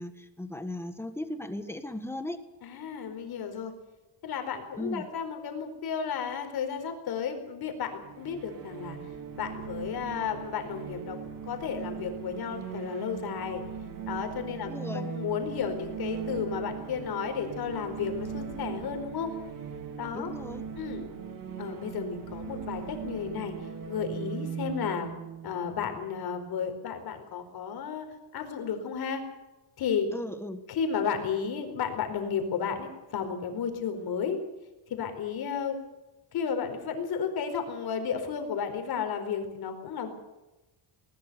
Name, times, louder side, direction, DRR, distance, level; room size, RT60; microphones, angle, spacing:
voice 1, 0.0-2.4 4.8-5.1 14.6-15.1 20.1-20.6 30.1-30.6, left 1 dB, 5° left, 8 dB, 1.7 m, -37 dB
voice 2, 2.6-3.7 4.2-9.0 9.4-11.2 11.4-13.6 14.1-19.3 20.0-20.3 20.8-21.1 21.6-23.6 23.9-25.1 25.4-28.1 28.3-29.2 29.8-30.1 30.7-34.4 34.9-35.8 36.3-40.1, left 7 dB, 55° left, 6 dB, 4.5 m, -33 dB
sound 1, 8.0-26.6, right 7 dB, 50° right, 2.6 m, -39 dB
20.5 x 20.0 x 6.9 m, 1.0 s
cardioid pair, 165°, 43 cm